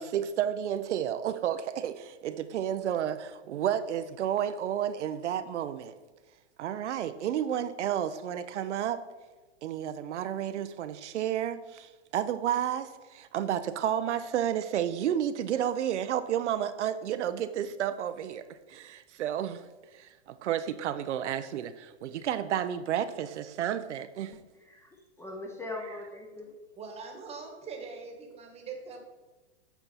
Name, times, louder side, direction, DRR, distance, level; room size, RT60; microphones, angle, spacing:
voice 1, 0.0-5.9 6.6-9.0 9.6-19.6 19.9-24.3, right 10 dB, 80° right, 11 dB, 0.6 m, -31 dB
voice 2, 25.2-26.5, left 2 dB, 5° left, 1 dB, 0.7 m, -40 dB
voice 3, 26.8-29.0, right 4 dB, 20° right, 3 dB, 1.2 m, -42 dB
8.1 x 4.4 x 4.1 m, 1.2 s
hypercardioid pair, 130°, 35 cm